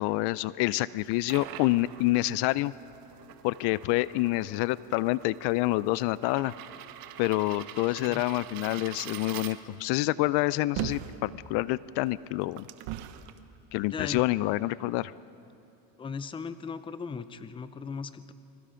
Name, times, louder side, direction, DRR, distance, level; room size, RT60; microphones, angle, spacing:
voice 1, 0.0-2.7 3.4-6.5 7.2-12.7 13.7-15.1, left 19 dB, 65° left, 19 dB, 0.5 m, -27 dB
sound 1, 1.0-10.0, right 12 dB, 50° right, 1.1 m, -46 dB
sound 2, 10.7-11.2 12.0-13.4 14.1-14.2, right 14 dB, 75° right, 1.3 m, -36 dB
voice 2, 13.9-14.2 16.0-18.3, left 5 dB, 10° left, 12 dB, 0.5 m, -37 dB
28.5 x 22.0 x 5.1 m, 2.9 s
cardioid pair, 130°, 44 cm